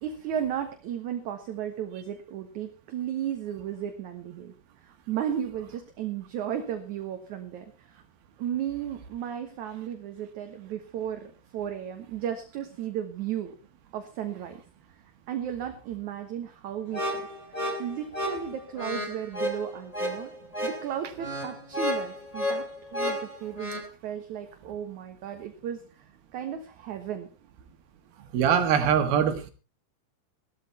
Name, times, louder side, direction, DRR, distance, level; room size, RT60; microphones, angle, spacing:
voice 1, 0.0-4.5 4.8-8.0 8.4-13.6 13.9-14.6 15.3-17.2 17.8-20.3 20.6-27.3, right 9 dB, 60° right, 6 dB, 2.5 m, -34 dB
sound 1, 16.9-23.9, left 1 dB, 10° left, 2.7 m, -32 dB
voice 2, 28.3-29.5, right 8 dB, 80° right, 8 dB, 3.5 m, -22 dB
16.5 x 13.0 x 4.3 m, 0.34 s
omnidirectional pair, 4.3 m